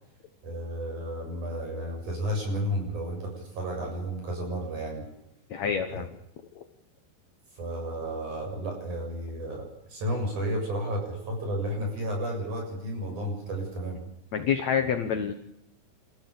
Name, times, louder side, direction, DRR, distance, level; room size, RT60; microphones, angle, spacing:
voice 1, 0.4-5.1 5.9-6.1 7.6-14.0, equal, 45° right, 1 dB, 8.6 m, -32 dB
voice 2, 5.5-6.1 6.5-6.6 14.3-15.3, left 7 dB, 75° left, 7 dB, 1.6 m, -27 dB
30.0 x 14.5 x 7.2 m, 0.86 s
omnidirectional pair, 5.0 m